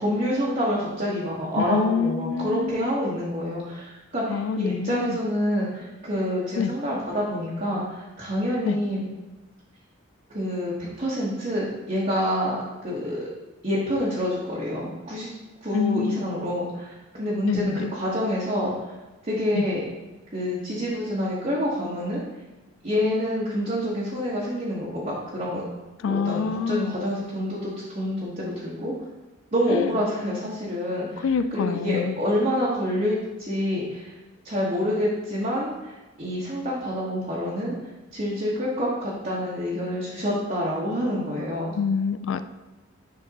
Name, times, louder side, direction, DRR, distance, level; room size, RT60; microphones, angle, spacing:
voice 1, 0.0-9.1 10.3-12.6 12.8-13.2 13.6-15.3 15.6-18.7 19.2-19.8 20.3-22.2 22.8-25.6 26.0-28.9 29.5-31.2 31.5-34.1 34.4-37.7 38.1-41.7, equal, 35° right, -7 dB, 1.1 m, -27 dB
voice 2, 1.6-2.9 4.3-5.2 6.6-6.7 8.6-8.8 15.7-16.2 17.4-17.9 19.5-19.6 26.0-27.0 29.7-29.9 31.2-32.2 41.7-42.5, left 5 dB, 70° left, 12 dB, 0.3 m, -26 dB
10.5 x 3.5 x 2.8 m, 1.1 s
head